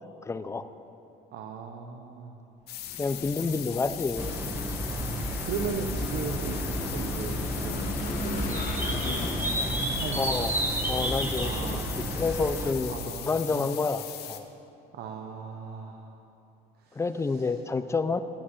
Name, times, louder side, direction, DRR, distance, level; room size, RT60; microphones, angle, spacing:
voice 1, 0.2-0.6 3.0-4.3 10.1-10.6 10.9-11.8 12.1-12.9 13.3-14.5 16.9-18.2, left 4 dB, 15° left, 11 dB, 0.4 m, -29 dB
voice 2, 1.3-2.4 2.9-3.0 4.9-8.7 10.0-10.5 11.4-12.2 12.9-13.8 14.9-16.1 16.8-17.5, right 6 dB, 70° right, 2 dB, 0.8 m, -38 dB
sound 1, 2.7-14.4, left 11 dB, 75° left, 0.8 m, -39 dB
Vehicle / Engine, 2.7-12.5, left 3 dB, 50° left, 1.2 m, -39 dB
sound 2, 4.2-12.7, right 1 dB, 10° right, 1.2 m, -31 dB
10.0 x 6.0 x 8.1 m, 2.8 s
cardioid pair, 110°, 17 cm